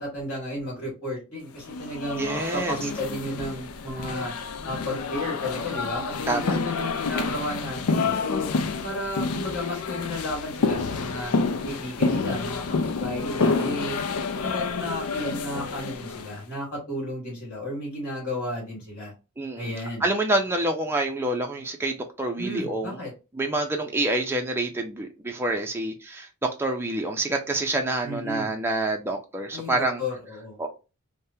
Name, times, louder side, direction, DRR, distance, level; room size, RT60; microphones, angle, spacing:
voice 1, 0.0-4.3 4.6-8.5 8.8-11.3 11.6-14.0 14.3-19.1 19.5-20.1 22.4-23.1 28.0-28.5 29.5-30.6, left 1 dB, 50° left, -4 dB, 1.8 m, -33 dB
sound 1, 1.6-16.4, left 4 dB, 70° left, 0.4 m, -29 dB
voice 2, 2.1-2.8 6.3-6.6 13.4-13.8 19.4-19.7 20.0-23.0 23.3-30.0 30.6-30.7, right 2 dB, 10° right, 2 dB, 0.4 m, -27 dB
3.4 x 2.1 x 2.7 m, 0.29 s
head